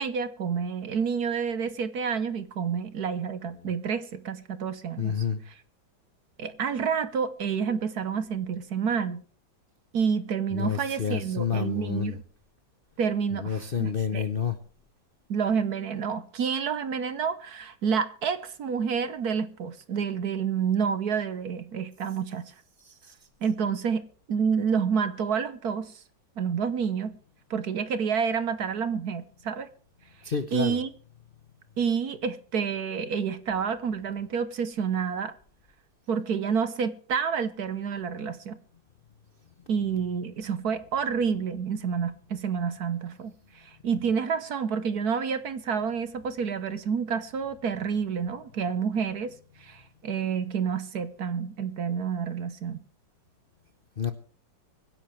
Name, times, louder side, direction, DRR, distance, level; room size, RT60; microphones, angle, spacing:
voice 1, 0.0-5.1 6.4-9.2 9.9-12.2 13.0-14.3 15.3-22.5 23.4-26.0 26.4-27.2 27.5-29.7 30.5-30.9 31.8-35.3 36.1-38.6 39.7-52.8, right 6 dB, 55° right, 1.3 m, -29 dB
voice 2, 5.0-5.4 10.5-12.2 13.4-14.6 22.8-23.1 30.2-30.8 54.0-54.1, left 6 dB, 40° left, 0.8 m, -29 dB
24.5 x 10.5 x 3.3 m
omnidirectional pair, 2.1 m